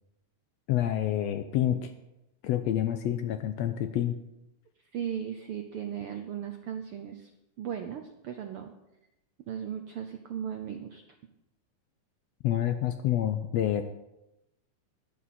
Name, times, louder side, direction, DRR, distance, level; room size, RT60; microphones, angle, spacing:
voice 1, 0.7-1.9 2.4-4.2 12.4-13.8, left 11 dB, 80° left, 9 dB, 1.6 m, -28 dB
voice 2, 4.9-7.3 7.6-8.7 9.5-11.0, right 9 dB, 80° right, 6 dB, 1.2 m, -37 dB
11.0 x 11.0 x 4.3 m, 0.90 s
omnidirectional pair, 3.4 m